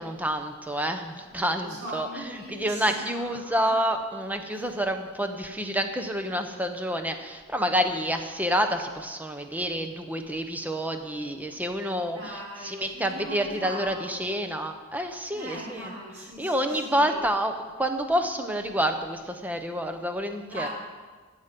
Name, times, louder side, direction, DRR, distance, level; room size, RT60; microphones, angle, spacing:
voice 1, 0.0-15.9 16.4-20.7, equal, 5° right, 6 dB, 0.8 m, -28 dB
voice 2, 1.6-3.7 4.5-4.6 12.1-14.2 15.3-17.2 20.5-20.7, right 1 dB, 80° right, -4 dB, 4.2 m, -40 dB
14.5 x 8.0 x 5.3 m, 1.4 s
head